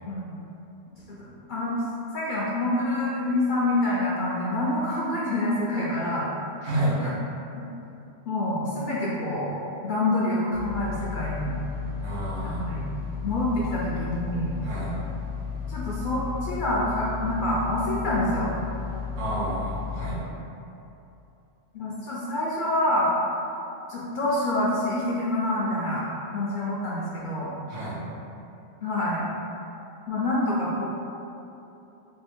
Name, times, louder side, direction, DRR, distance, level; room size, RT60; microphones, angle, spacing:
voice 1, 0.0-0.4 1.1-1.8 2.1-6.3 7.0-7.1 7.6-7.7 8.3-9.6 9.8-11.5 12.4-12.8 13.2-14.5 15.7-18.5 21.7-23.1 23.9-26.0 26.3-27.5 28.8-29.3 30.1-30.8, left 1 dB, 55° left, -6 dB, 0.5 m, -27 dB
voice 2, 6.6-7.0 12.0-12.6 14.6-14.9 19.2-20.2 27.7-28.0, right 1 dB, 85° right, -10 dB, 1.5 m, -29 dB
sound 1, 10.5-20.2, left 6 dB, 85° left, 1.0 m, -34 dB
3.5 x 2.4 x 4.2 m, 2.9 s
omnidirectional pair, 1.2 m